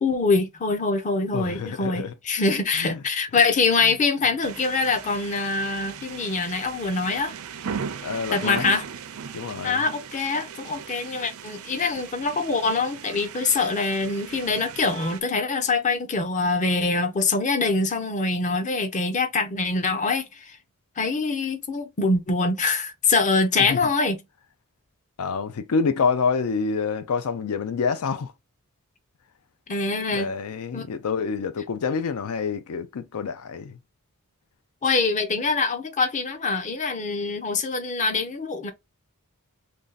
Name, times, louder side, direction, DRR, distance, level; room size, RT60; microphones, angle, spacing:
voice 1, 0.0-7.3 8.3-8.8 9.6-20.6 21.0-24.2 29.7-30.3 30.7-30.9 34.8-38.7, left 3 dB, 35° left, 0.6 m, -24 dB
voice 2, 1.3-2.1 2.8-3.0 8.0-8.6 9.3-9.8 23.7-23.8 25.2-28.3 30.1-33.7, left 5 dB, 75° left, 0.4 m, -27 dB
sound 1, 4.4-15.2, right 7 dB, 65° right, 0.5 m, -38 dB
3.2 x 2.7 x 3.8 m
head